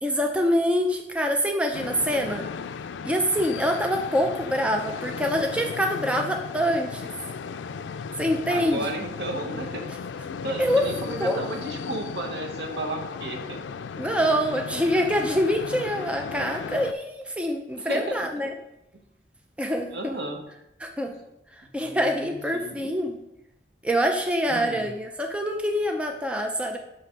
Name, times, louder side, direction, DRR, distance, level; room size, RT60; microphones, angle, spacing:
voice 1, 0.0-2.5 3.0-7.1 8.2-8.9 10.6-10.9 11.2-11.4 14.0-18.5 19.6-19.9 20.8-21.1 21.7-23.2 23.8-26.8, equal, 5° right, 3 dB, 0.5 m, -25 dB
sound 1, 1.7-16.9, left 6 dB, 85° left, 0.4 m, -35 dB
voice 2, 8.5-9.8 10.3-13.6 17.8-18.3 19.9-20.4 21.8-23.0 24.5-24.9, right 1 dB, 70° right, 2 dB, 1.3 m, -33 dB
5.9 x 5.8 x 5.3 m, 0.85 s
head